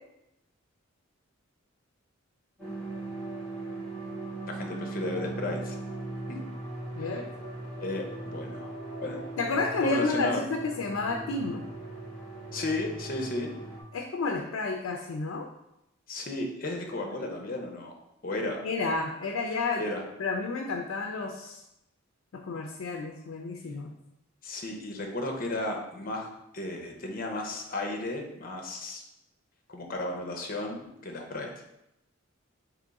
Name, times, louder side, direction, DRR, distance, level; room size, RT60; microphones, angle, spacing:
sound 1, 2.6-13.8, right 2 dB, 5° left, 1.5 m, -39 dB
voice 1, 4.5-5.8 6.3-6.4 7.0-7.1 7.8-8.7 9.0-9.2 9.8-10.4 12.5-13.5 16.1-18.0 18.2-18.6 19.8-20.0 24.4-29.0 29.7-31.5, left 2 dB, 45° left, 2 dB, 0.7 m, -34 dB
voice 2, 9.4-11.6 13.9-15.5 18.6-19.9 20.2-21.6 22.3-23.9, left 3 dB, 80° left, 3 dB, 0.4 m, -31 dB
3.5 x 3.0 x 4.0 m, 0.85 s
head